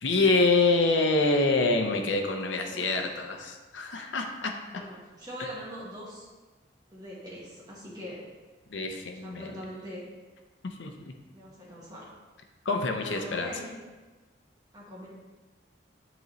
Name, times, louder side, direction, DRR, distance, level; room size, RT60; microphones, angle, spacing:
voice 1, 0.0-4.5 8.7-9.5 10.8-11.1 12.6-13.5, left 3 dB, 85° left, 4 dB, 0.7 m, -26 dB
voice 2, 2.7-3.1 4.7-6.3 6.9-8.2 9.1-10.0 11.3-12.1 13.0-13.8 14.7-15.1, equal, 20° right, -6 dB, 1.7 m, -42 dB
10.5 x 4.0 x 3.1 m, 1.3 s
head